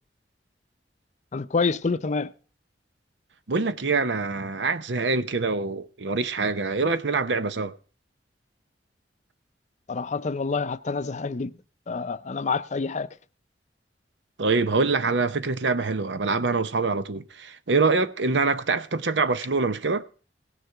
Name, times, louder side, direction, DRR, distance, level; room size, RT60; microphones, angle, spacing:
voice 1, 1.3-2.3 9.9-11.5 11.9-13.1, left 4 dB, 40° left, 0.5 m, -27 dB
voice 2, 3.5-7.7 14.4-20.1, right 4 dB, 90° right, 0.8 m, -25 dB
17.5 x 6.6 x 4.6 m
head